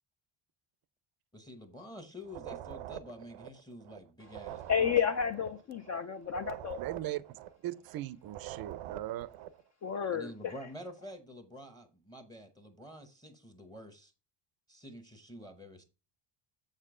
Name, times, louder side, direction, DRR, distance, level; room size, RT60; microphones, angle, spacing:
voice 1, 1.3-5.3 10.1-14.1 14.7-15.8, equal, 10° left, 0.8 m, -48 dB
sound 1, 2.2-4.0 4.2-8.0 8.2-9.6, right 14 dB, 85° right, 0.7 m, -45 dB
voice 2, 4.7-6.8 9.8-10.5, left 7 dB, 35° left, 0.5 m, -31 dB
voice 3, 6.8-7.2 7.6-9.3, right 14 dB, 50° right, 0.5 m, -38 dB
7.4 x 6.6 x 3.7 m
cardioid pair, 155°, 49 cm